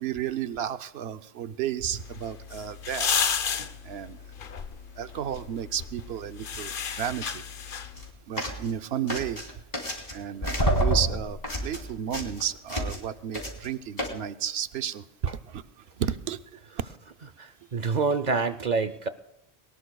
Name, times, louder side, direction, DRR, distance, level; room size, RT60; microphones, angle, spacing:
voice 1, 0.0-3.1 3.9-4.2 5.0-7.4 8.3-9.4 10.1-15.0 15.5-15.6 16.0-16.4, right 9 dB, 75° right, 11 dB, 0.9 m, -32 dB
sound 1, 1.9-8.1, left 7 dB, 55° left, 0.9 m, -33 dB
sound 2, 7.8-8.0 8.4-8.7 9.1-10.2 10.4-13.1 13.3-13.7 14.0-14.1, right 1 dB, 40° left, 3.4 m, -28 dB
voice 2, 17.4-19.1, right 4 dB, 50° right, 13 dB, 0.6 m, -27 dB
22.5 x 19.5 x 2.3 m, 0.87 s
omnidirectional pair, 1.1 m